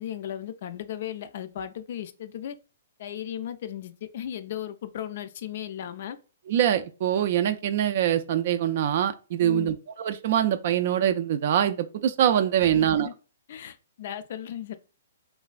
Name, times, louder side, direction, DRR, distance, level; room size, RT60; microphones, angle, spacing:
voice 1, 0.0-2.5 3.0-6.2 9.4-9.8 12.6-13.1 13.5-14.8, left 10 dB, 55° left, 0.3 m, -36 dB
voice 2, 6.5-13.1, right 10 dB, 55° right, 0.3 m, -24 dB
3.2 x 2.2 x 2.4 m
hypercardioid pair, 140°, 0 cm